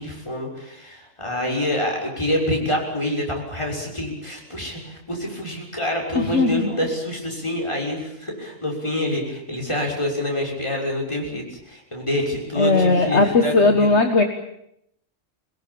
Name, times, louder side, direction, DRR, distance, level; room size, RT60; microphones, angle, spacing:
voice 1, 0.0-13.9, left 1 dB, 20° left, 0 dB, 6.5 m, -26 dB
voice 2, 6.2-6.7 12.6-14.2, left 3 dB, 60° left, 6 dB, 1.9 m, -18 dB
24.0 x 21.0 x 8.8 m, 0.76 s
omnidirectional pair, 1.3 m